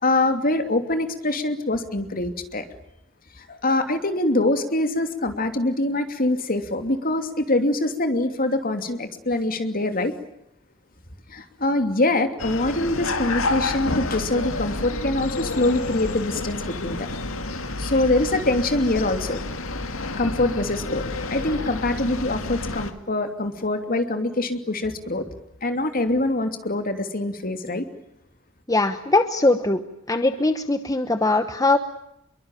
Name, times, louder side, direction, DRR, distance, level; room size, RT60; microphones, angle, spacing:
voice 1, 0.0-2.7 3.4-10.1 11.3-17.1 17.8-25.2 25.6-27.9, left 2 dB, 45° left, 7 dB, 2.8 m, -24 dB
sound 1, 12.4-22.9, left 2 dB, 75° left, 2.3 m, -29 dB
voice 2, 28.7-29.8 30.1-31.8, left 2 dB, 15° left, 9 dB, 1.1 m, -21 dB
27.0 x 23.0 x 9.1 m, 0.80 s
head